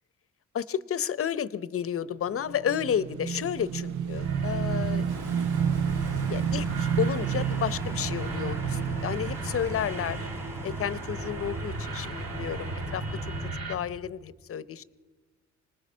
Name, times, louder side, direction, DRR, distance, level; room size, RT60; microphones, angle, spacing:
voice 1, 0.5-5.0 6.3-10.3 10.6-13.3 13.7-14.8, left 9 dB, 50° left, 17 dB, 0.7 m, -31 dB
Motorcycle / Engine, 2.3-10.8, right 8 dB, 80° right, 0.8 m, -31 dB
sound 1, 4.1-13.7, right 2 dB, 55° right, 3.1 m, -35 dB
sound 2, 5.1-13.5, right 1 dB, 10° right, 1.7 m, -44 dB
25.0 x 19.5 x 6.2 m, 1.3 s
cardioid pair, 90°, 30 cm